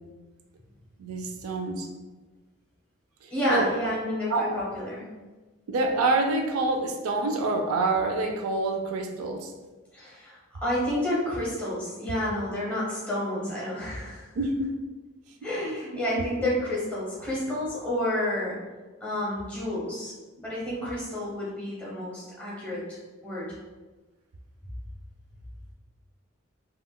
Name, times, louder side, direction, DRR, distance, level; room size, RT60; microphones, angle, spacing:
voice 1, 1.0-1.9 3.2-3.7 4.3-4.6 5.7-9.5 14.4-14.8 16.2-16.3, right 3 dB, 90° right, 3 dB, 0.4 m, -27 dB
voice 2, 3.3-5.1 9.9-14.2 15.4-18.6 19.0-23.0 23.2-23.5, left 1 dB, 5° left, -7 dB, 0.8 m, -30 dB
3.6 x 2.3 x 2.2 m, 1.2 s
head